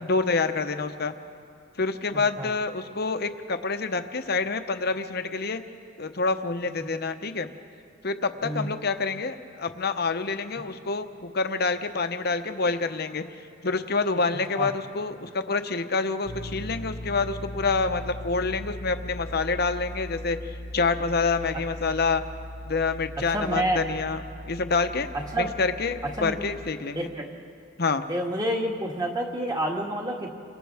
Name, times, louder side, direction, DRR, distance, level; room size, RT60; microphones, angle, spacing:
voice 1, 0.0-1.2 1.8-5.6 6.0-7.5 8.0-13.2 13.6-22.2 22.7-24.2 24.5-25.1 25.4-27.1 27.8-28.0, left 4 dB, 50° left, 8 dB, 0.9 m, -27 dB
voice 2, 2.1-2.5 6.6-6.8 8.4-8.7 14.6-14.7 23.3-23.8 25.1-25.5 26.0-26.4 27.0-27.3 28.1-30.3, right 1 dB, 20° right, 0 dB, 1.8 m, -29 dB
sound 1, 16.2-26.7, left 1 dB, 85° left, 1.3 m, -39 dB
29.5 x 25.0 x 3.5 m, 2.4 s
head